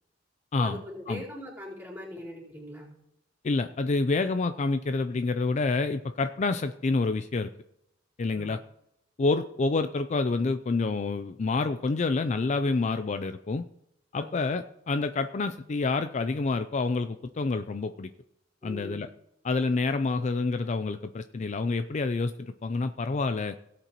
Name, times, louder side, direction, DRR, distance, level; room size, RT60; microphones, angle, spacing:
voice 1, 0.5-3.0 8.3-8.5 14.1-14.5 18.6-19.1, left 1 dB, 10° right, -5 dB, 4.1 m, -41 dB
voice 2, 3.4-7.5 8.2-8.6 9.2-13.7 14.1-18.1 18.6-19.1 19.4-23.6, left 3 dB, 40° left, 10 dB, 0.4 m, -28 dB
17.5 x 8.2 x 3.0 m, 0.82 s
head